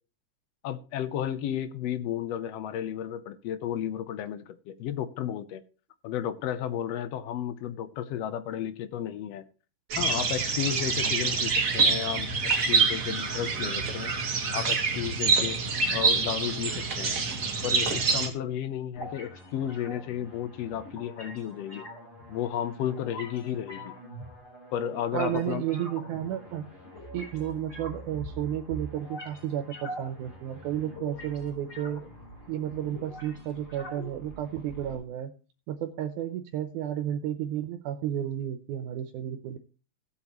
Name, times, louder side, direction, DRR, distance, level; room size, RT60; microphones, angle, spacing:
voice 1, 0.6-5.6 6.0-9.4 10.0-14.1 14.5-15.6 15.9-17.2 17.6-21.8 22.3-23.9 24.7-25.6, left 10 dB, 70° left, 1.7 m, -33 dB
sound 1, 9.9-18.3, right 4 dB, 40° right, 1.3 m, -26 dB
sound 2, 18.9-34.9, equal, 20° left, 4.0 m, -44 dB
voice 2, 25.1-26.7 27.1-32.0 32.5-35.3 35.7-39.6, right 10 dB, 85° right, 2.2 m, -32 dB
16.0 x 8.4 x 3.0 m
omnidirectional pair, 3.4 m